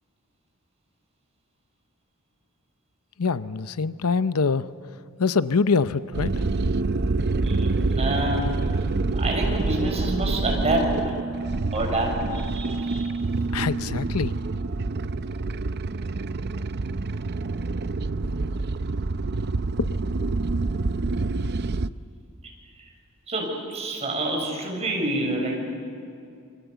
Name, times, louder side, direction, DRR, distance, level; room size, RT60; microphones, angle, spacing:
voice 1, 3.2-4.7 5.2-6.5 13.5-14.3, left 4 dB, 80° left, 14 dB, 0.7 m, -24 dB
sound 1, 6.1-21.9, right 3 dB, 50° right, 0.6 m, -27 dB
voice 2, 7.4-8.6 9.1-11.0 11.7-13.1 23.3-25.6, right 1 dB, 30° right, 0 dB, 6.9 m, -27 dB
28.0 x 25.5 x 8.2 m, 2.4 s
head